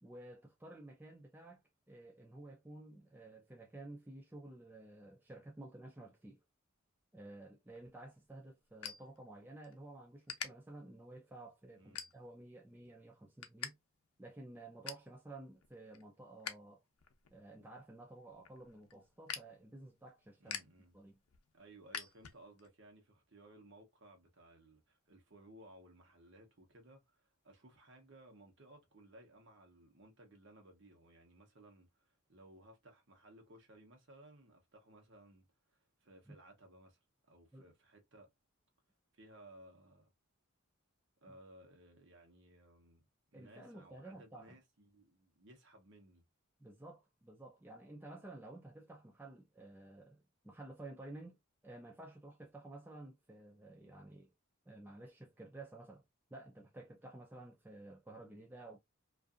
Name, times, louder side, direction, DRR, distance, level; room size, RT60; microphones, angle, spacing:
voice 1, 0.0-1.6 1.9-6.4 7.1-13.8 14.2-16.8 17.3-20.6 20.9-21.2 36.3-36.4 37.5-37.7 43.3-44.6 46.6-51.4 51.6-54.3 54.7-56.0 56.3-58.8, right 2 dB, 10° right, 0.3 m, -53 dB
sound 1, 7.7-9.7 10.0-10.5 11.0-11.3 11.8-12.5 12.9-13.7 14.0-14.1 14.5-15.1 15.6-16.5 16.9-22.7, left 8 dB, 90° left, 0.5 m, -47 dB
voice 2, 11.8-12.1 20.4-21.0 21.5-38.3 39.1-40.1 41.2-43.1 43.3-46.2, right 1 dB, 55° right, 0.9 m, -60 dB
2.5 x 2.5 x 2.4 m
head